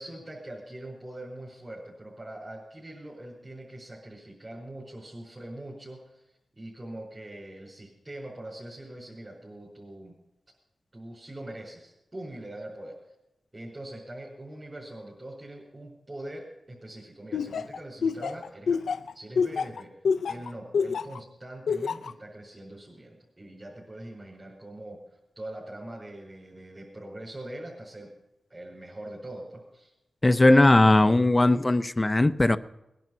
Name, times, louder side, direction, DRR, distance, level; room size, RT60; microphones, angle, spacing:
voice 1, 0.0-6.2 6.5-10.2 10.9-13.0 13.5-18.8 19.1-19.9 20.3-28.1 28.5-29.9, right 1 dB, 25° right, 5.1 m, -42 dB
Laughter, 17.3-21.2 21.7-22.1, left 5 dB, 90° left, 0.5 m, -27 dB
voice 2, 30.2-32.6, left 2 dB, 20° left, 0.6 m, -19 dB
19.5 x 11.0 x 5.5 m
wide cardioid pair, 80°, 0 cm